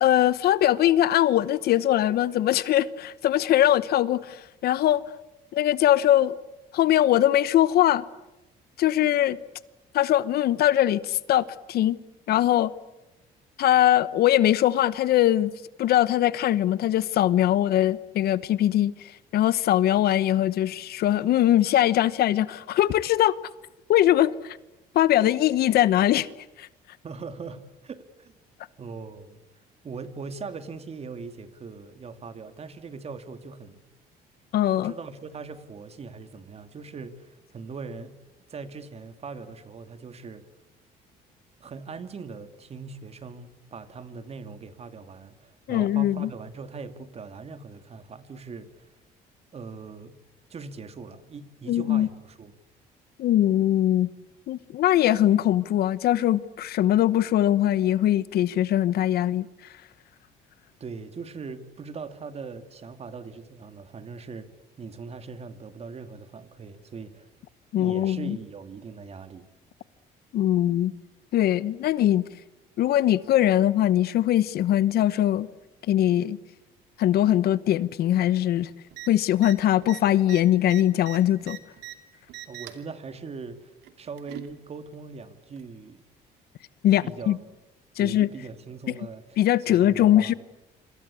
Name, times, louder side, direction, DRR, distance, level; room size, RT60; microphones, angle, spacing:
voice 1, 0.0-5.0 5.5-6.4 6.7-8.0 8.8-9.4 9.9-12.0 12.3-12.7 13.6-15.5 15.8-23.4 23.9-24.6 24.9-26.3 26.6-26.7 34.5-34.9 45.7-46.3 51.7-52.1 53.2-54.1 54.5-59.5 67.7-68.4 70.3-70.9 71.3-72.3 72.8-75.5 75.9-76.4 77.0-78.7 79.1-81.6 86.8-87.4 88.0-88.3 89.4-90.3, left 12 dB, 65° left, 1.0 m, -21 dB
voice 2, 27.0-28.4 28.8-29.4 29.8-33.9 34.7-38.2 38.5-40.4 41.6-48.9 49.5-50.2 50.5-52.5 60.8-64.5 64.8-67.3 67.7-69.5 82.5-86.0 87.0-87.4 88.0-89.4 89.7-90.3, right 4 dB, 40° right, 2.6 m, -40 dB
sound 1, 78.9-79.1 79.4-79.6 79.8-82.0 82.3-82.9 83.8-84.5 85.6-85.7, right 14 dB, 85° right, 2.6 m, -41 dB
26.5 x 26.0 x 8.5 m
cardioid pair, 110°, 17 cm